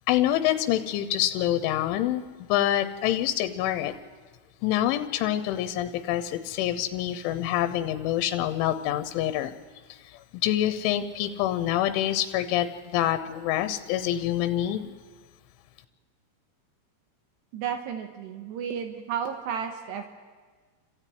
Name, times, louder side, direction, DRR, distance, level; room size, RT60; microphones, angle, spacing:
voice 1, 0.1-2.2 2.5-4.0 4.6-9.5 9.9-12.7 12.9-14.9, left 12 dB, 85° left, 11 dB, 3.3 m, -26 dB
voice 2, 17.5-20.1, right 7 dB, 75° right, 6 dB, 3.1 m, -32 dB
29.5 x 13.0 x 9.4 m, 1.5 s
omnidirectional pair, 5.4 m